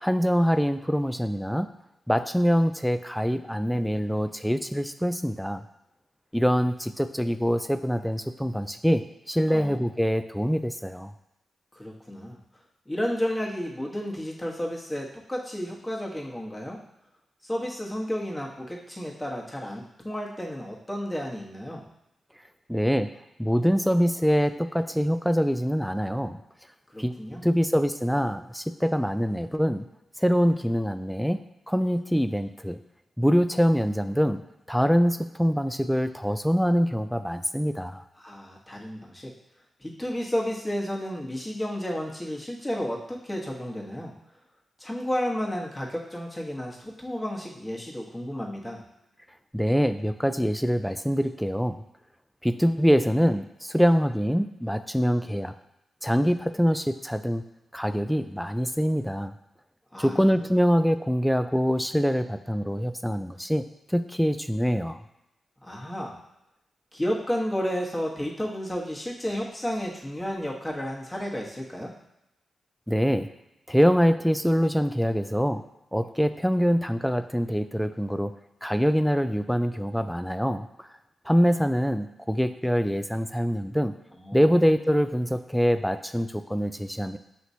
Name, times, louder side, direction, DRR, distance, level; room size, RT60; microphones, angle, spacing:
voice 1, 0.0-1.7 2.1-5.6 6.3-11.1 22.7-26.4 27.0-29.9 30.2-31.4 31.7-32.8 33.2-34.4 34.7-38.0 49.5-51.8 52.4-55.5 56.0-57.4 57.7-59.3 60.0-65.0 72.9-73.3 73.7-75.6 75.9-78.3 78.6-80.9 81.3-83.9 84.3-87.2, equal, ahead, 10 dB, 0.3 m, -24 dB
voice 2, 9.5-9.9 11.7-12.4 12.9-16.8 17.4-21.8 26.9-27.5 38.2-39.3 39.8-44.1 44.8-48.8 59.9-60.6 65.6-66.1 66.9-71.9 84.2-84.6, equal, 15° left, -2 dB, 1.2 m, -32 dB
5.8 x 3.0 x 2.7 m, 0.89 s
supercardioid pair, 45°, 0 cm